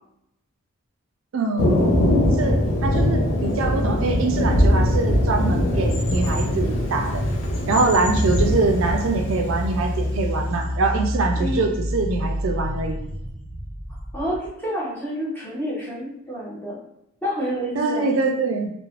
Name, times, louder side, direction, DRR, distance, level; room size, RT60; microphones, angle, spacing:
voice 1, 1.3-2.1 2.3-7.2 7.7-13.0 17.8-18.7, right 3 dB, 65° right, 3 dB, 0.4 m, -24 dB
Thunder, 1.6-10.6, left 1 dB, 60° left, 0.6 m, -22 dB
sound 1, 8.0-14.5, equal, 90° left, 0.9 m, -28 dB
voice 2, 11.4-11.8 14.1-16.8 17.2-18.1, equal, 10° left, -7 dB, 0.6 m, -29 dB
3.1 x 2.0 x 2.4 m, 0.80 s
head